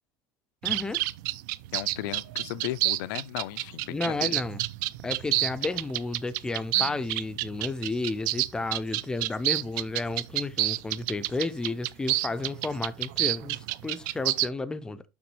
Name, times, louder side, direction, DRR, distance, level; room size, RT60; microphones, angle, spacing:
voice 1, 0.6-1.0 3.9-4.6 5.0-15.0, left 3 dB, 5° left, 0.4 m, -32 dB
sound 1, 0.6-14.5, right 17 dB, 75° right, 0.4 m, -29 dB
voice 2, 1.7-4.3 6.7-7.0, left 15 dB, 80° left, 0.5 m, -35 dB
7.0 x 5.9 x 3.1 m
cardioid pair, 180°, 10 cm